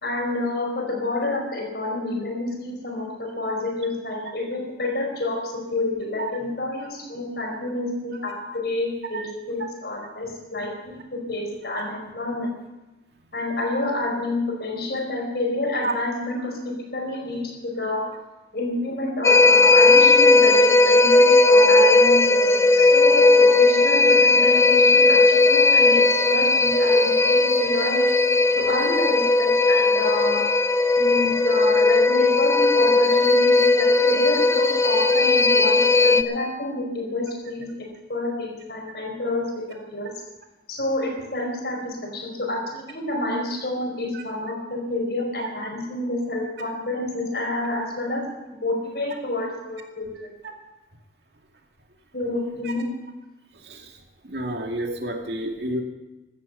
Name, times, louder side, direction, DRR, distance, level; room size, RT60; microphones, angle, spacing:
voice 1, 0.0-11.0 11.3-12.5 13.3-16.6 16.9-18.1 18.5-28.0 28.5-30.5 31.0-40.1 40.7-48.3 48.6-50.1 52.1-52.9, left 2 dB, 65° left, 1 dB, 5.1 m, -28 dB
sound 1, 19.2-36.2, left 3 dB, 15° left, 0.7 m, -17 dB
voice 2, 54.2-55.8, right 1 dB, 75° right, 2 dB, 2.4 m, -29 dB
16.0 x 12.5 x 5.6 m, 1.1 s
head